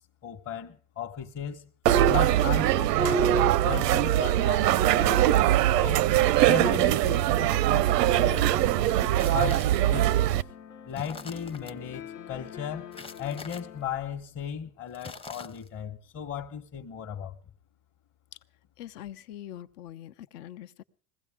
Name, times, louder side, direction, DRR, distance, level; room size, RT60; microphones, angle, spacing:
voice 1, 0.2-1.7 2.1-6.0 6.5-8.6 9.3-10.3 10.9-12.9 13.2-17.4, left 8 dB, 30° left, 1.0 m, -36 dB
sound 1, 1.9-10.4, right 12 dB, 85° right, 0.6 m, -22 dB
sound 2, 4.3-13.9, left 9 dB, 90° left, 1.1 m, -46 dB
sound 3, 7.1-8.0 8.9-10.0 10.9-11.7 12.9-13.6 14.9-15.8, left 3 dB, 10° left, 0.6 m, -46 dB
voice 2, 18.8-20.8, left 12 dB, 70° left, 0.9 m, -43 dB
21.5 x 15.5 x 3.6 m
hypercardioid pair, 100°, 47 cm